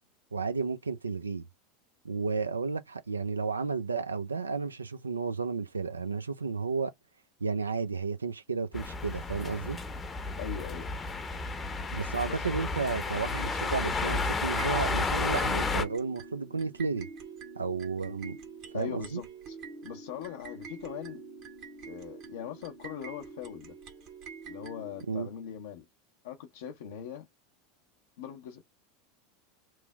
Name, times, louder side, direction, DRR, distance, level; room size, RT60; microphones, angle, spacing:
voice 1, 0.3-1.5 2.0-6.9 7.4-9.8 11.9-17.1 17.6-18.4 18.7-19.2 25.1-25.3, right 4 dB, 90° right, 0.4 m, -32 dB
sound 1, 8.7-15.8, left 3 dB, 20° left, 0.7 m, -32 dB
voice 2, 10.4-11.0 12.3-12.5 18.7-19.6 19.8-21.2 21.9-23.7 24.4-25.8 26.2-27.3 28.2-28.6, left 9 dB, 65° left, 0.6 m, -41 dB
sound 2, 13.3-25.0, right 4 dB, 50° right, 1.0 m, -46 dB
3.0 x 2.0 x 3.4 m
hypercardioid pair, 85°, 0 cm